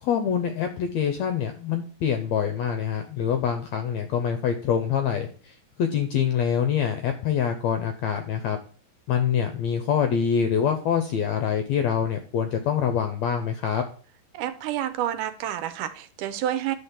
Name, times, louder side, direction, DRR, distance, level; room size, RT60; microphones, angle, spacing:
voice 1, 0.0-8.6 9.1-13.8, left 8 dB, 80° left, 7 dB, 1.6 m, -25 dB
voice 2, 14.3-16.8, right 11 dB, 75° right, 11 dB, 2.1 m, -29 dB
10.5 x 4.4 x 7.3 m, 0.42 s
omnidirectional pair, 4.0 m